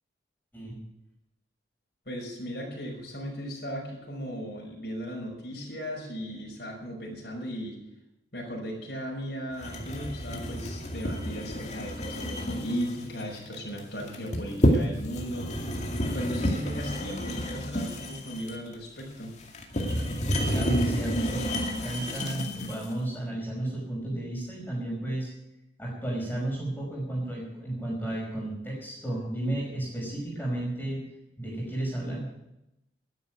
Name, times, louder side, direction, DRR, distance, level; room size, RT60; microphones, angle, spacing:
voice 1, 2.1-7.8 8.3-15.5 16.0-19.3, equal, 60° left, -2 dB, 5.5 m, -36 dB
sound 1, 9.6-22.9, equal, 40° left, 2.2 m, -30 dB
voice 2, 20.5-25.3 25.8-31.0 31.4-32.3, right 1 dB, 10° left, -4 dB, 5.5 m, -33 dB
13.0 x 10.0 x 9.4 m, 0.87 s
head